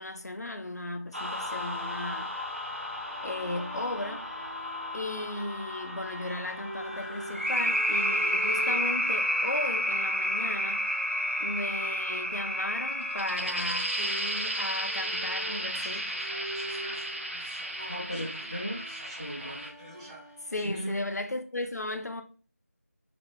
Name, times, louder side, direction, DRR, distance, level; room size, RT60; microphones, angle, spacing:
voice 1, 0.0-2.3 3.2-4.3 4.9-10.9 11.4-16.1 20.4-22.2, left 2 dB, 85° left, 0.4 m, -36 dB
sound 1, 1.1-19.7, equal, 50° right, 0.6 m, -32 dB
Bowed string instrument, 2.9-20.7, equal, 5° left, 1.1 m, -45 dB
sound 2, 15.5-20.7, equal, 25° right, 1.0 m, -48 dB
voice 2, 17.8-19.7 20.6-21.1, equal, 25° left, 0.6 m, -37 dB
2.8 x 2.2 x 3.3 m
figure-of-eight pair, 170°, 9 cm